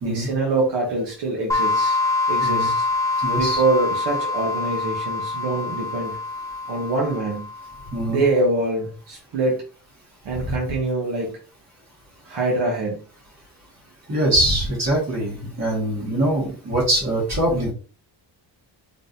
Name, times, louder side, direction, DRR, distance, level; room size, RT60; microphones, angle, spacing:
voice 1, 0.0-2.0 2.3-2.9 3.4-6.2 6.7-7.5 8.1-9.6 10.2-11.4 12.2-13.0, right 2 dB, 70° right, -2 dB, 1.2 m, -24 dB
sound 1, 1.5-8.0, left 3 dB, 5° left, 0.5 m, -25 dB
voice 2, 3.2-3.6 7.9-8.2 10.4-10.5 14.1-17.7, right 1 dB, 35° right, -5 dB, 1.9 m, -23 dB
3.7 x 3.5 x 2.7 m, 0.39 s
wide cardioid pair, 170°, 44 cm